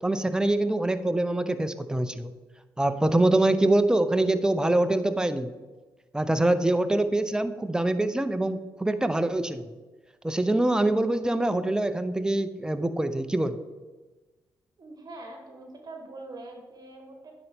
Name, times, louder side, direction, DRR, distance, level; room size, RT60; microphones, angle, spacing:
voice 1, 0.0-2.3 2.8-5.5 6.1-9.6 10.2-13.6, right 1 dB, 10° right, 10 dB, 0.6 m, -24 dB
voice 2, 14.8-17.3, right 2 dB, 50° right, 3 dB, 1.2 m, -43 dB
9.4 x 4.1 x 3.5 m, 1.2 s
supercardioid pair, 50°, 9 cm